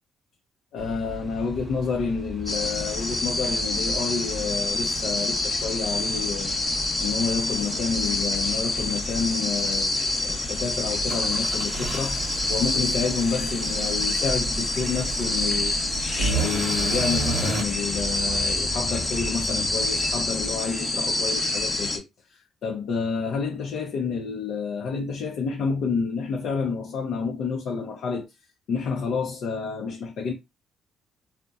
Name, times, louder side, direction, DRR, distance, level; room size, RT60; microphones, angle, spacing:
voice 1, 0.7-6.6 7.0-22.0 22.3-28.3 28.7-30.3, left 5 dB, 75° left, 0.5 m, -29 dB
sound 1, 0.8-20.6, right 2 dB, 20° right, 0.7 m, -39 dB
sound 2, 2.5-22.0, left 2 dB, 25° left, 0.7 m, -27 dB
sound 3, 11.1-17.6, right 4 dB, 60° right, 0.9 m, -32 dB
2.6 x 2.1 x 2.3 m
cardioid pair, 90°, 0 cm